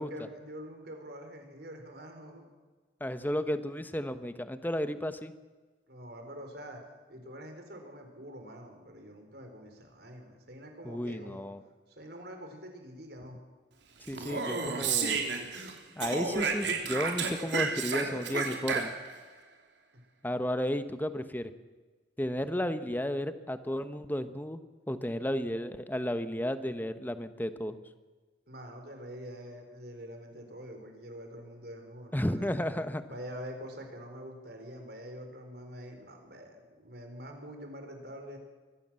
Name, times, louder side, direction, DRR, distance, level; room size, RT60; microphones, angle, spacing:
voice 1, 0.0-2.5 5.9-6.8 7.1-11.5 11.9-13.4 17.9-18.3 28.5-32.6 33.1-38.4, equal, 60° right, 4 dB, 4.5 m, -45 dB
voice 2, 3.0-5.3 10.8-11.6 14.1-15.3 16.0-18.9 20.2-21.5 22.2-27.8 32.1-33.0, equal, 10° left, 11 dB, 1.1 m, -33 dB
Speech, 14.1-15.7 16.0-19.2, right 4 dB, 85° right, 3.3 m, -31 dB
23.0 x 16.0 x 7.7 m, 1.3 s
head